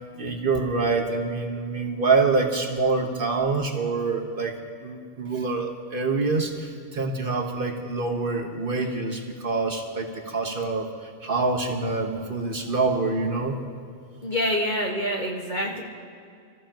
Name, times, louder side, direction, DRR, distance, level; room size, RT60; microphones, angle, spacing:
voice 1, 0.2-4.5 4.8-13.6, right 3 dB, 40° right, 3 dB, 1.4 m, -26 dB
voice 2, 14.2-15.8, equal, 35° left, -2 dB, 1.7 m, -26 dB
26.0 x 14.5 x 3.0 m, 2.3 s
omnidirectional pair, 1.5 m